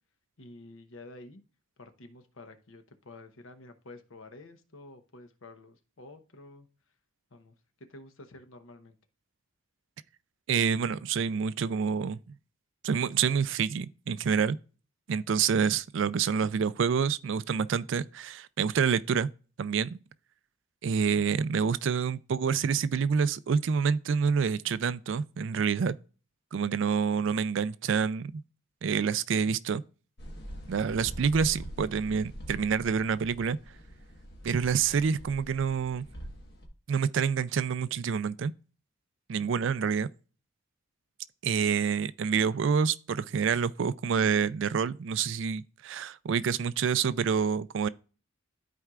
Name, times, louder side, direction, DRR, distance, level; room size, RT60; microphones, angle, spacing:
voice 1, 0.4-1.4 1.8-6.7 7.3-9.0, left 2 dB, 65° left, 0.9 m, -50 dB
voice 2, 10.5-12.2 12.8-14.6 15.1-19.3 19.6-20.0 20.8-25.9 26.5-28.4 28.8-29.8 30.7-33.6 34.4-36.1 36.9-38.5 39.3-40.1 41.4-47.9, right 6 dB, 60° right, 0.3 m, -27 dB
sound 1, 30.2-36.7, equal, 50° left, 1.3 m, -44 dB
13.0 x 4.5 x 2.4 m
head